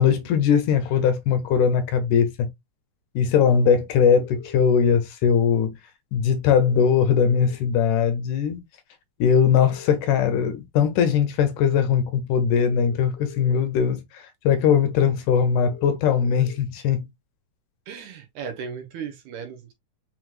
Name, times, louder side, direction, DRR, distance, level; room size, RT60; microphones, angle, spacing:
voice 1, 0.0-2.5 3.2-5.7 6.1-8.6 9.2-17.1, left 7 dB, 75° left, 2.1 m, -20 dB
sound 1, 4.2-4.6 6.6-7.6 9.6-10.6 12.6-13.6 15.6-16.6, left 7 dB, 60° left, 1.6 m, -44 dB
voice 2, 17.9-19.7, right 6 dB, 75° right, 2.0 m, -36 dB
5.8 x 3.0 x 2.3 m
omnidirectional pair, 3.9 m